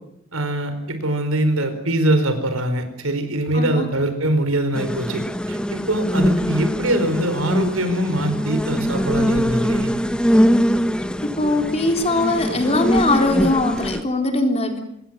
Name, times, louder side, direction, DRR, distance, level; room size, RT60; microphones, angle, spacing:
voice 1, 0.3-9.9, right 1 dB, 85° right, 9 dB, 4.7 m, -23 dB
voice 2, 3.5-3.9 11.2-14.8, left 2 dB, 30° left, 5 dB, 3.9 m, -21 dB
sound 1, 4.7-14.0, equal, 5° left, 1.1 m, -22 dB
26.0 x 21.0 x 7.7 m, 0.72 s
head